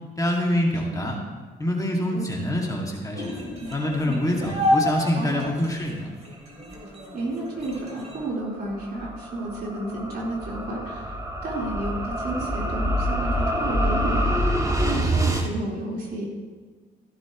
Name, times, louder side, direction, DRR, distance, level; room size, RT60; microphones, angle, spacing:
voice 1, 0.2-1.2 1.6-3.2 3.7-6.1, left 1 dB, 15° left, -2 dB, 2.3 m, -25 dB
sound 1, 3.1-8.2, left 1 dB, 35° right, 3.4 m, -29 dB
voice 2, 5.0-5.4 7.1-11.2 11.4-16.3, right 2 dB, 55° right, -4 dB, 4.3 m, -32 dB
sound 2, 7.6-15.5, equal, 15° right, 1.6 m, -26 dB
15.5 x 11.5 x 3.1 m, 1.5 s
cardioid pair, 90°, 20 cm